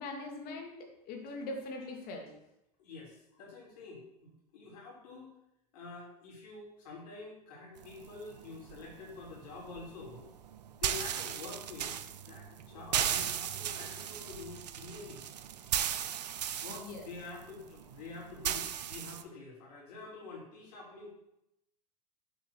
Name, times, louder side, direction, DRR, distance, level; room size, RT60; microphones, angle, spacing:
voice 1, 0.0-2.3 16.7-17.0, left 2 dB, 45° left, 3 dB, 1.9 m, -42 dB
voice 2, 2.8-5.3 5.7-10.3 10.8-12.0 12.3-15.2 16.6-21.1, left 3 dB, 70° left, -2 dB, 3.0 m, -47 dB
sound 1, 7.8-19.2, right 9 dB, 90° right, 0.5 m, -37 dB
7.0 x 3.7 x 6.0 m, 0.83 s
hypercardioid pair, 105°, 21 cm